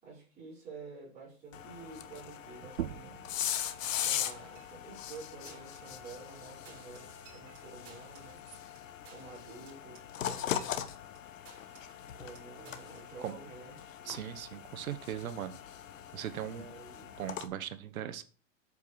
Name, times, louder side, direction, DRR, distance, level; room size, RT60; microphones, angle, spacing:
voice 1, 0.0-3.2 4.0-8.4 9.1-10.8 12.1-13.7 16.4-17.2, right 4 dB, 20° right, -6 dB, 6.0 m, -50 dB
sound 1, 1.5-17.5, left 10 dB, 70° left, 1.2 m, -40 dB
sound 2, 2.6-7.8, right 12 dB, 75° right, 0.8 m, -46 dB
sound 3, 3.7-4.8 5.1-5.2 5.4-6.4 6.6-11.2 11.5-12.0 12.3-13.2, right 7 dB, 55° right, 3.8 m, -58 dB
voice 2, 14.0-15.6 16.1-16.7 17.2-18.2, right 10 dB, 90° right, 11 dB, 1.2 m, -39 dB
8.3 x 7.3 x 4.9 m, 0.40 s
supercardioid pair, 170°, 41 cm